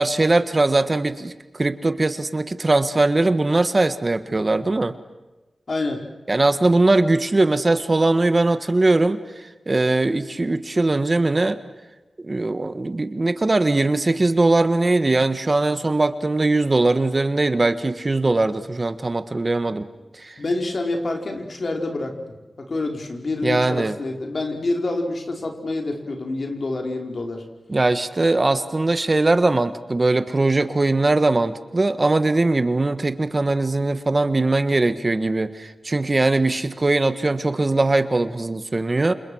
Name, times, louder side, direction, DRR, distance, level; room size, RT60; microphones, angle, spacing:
voice 1, 0.0-4.9 6.3-11.6 12.2-19.9 20.1-20.4 23.4-23.9 27.7-39.1, right 2 dB, 35° right, 11 dB, 1.5 m, -20 dB
voice 2, 5.7-6.0 20.4-22.1 22.6-27.4, left 2 dB, 60° left, 3 dB, 5.0 m, -27 dB
29.5 x 27.5 x 6.4 m, 1.1 s
wide cardioid pair, 90°, 0 cm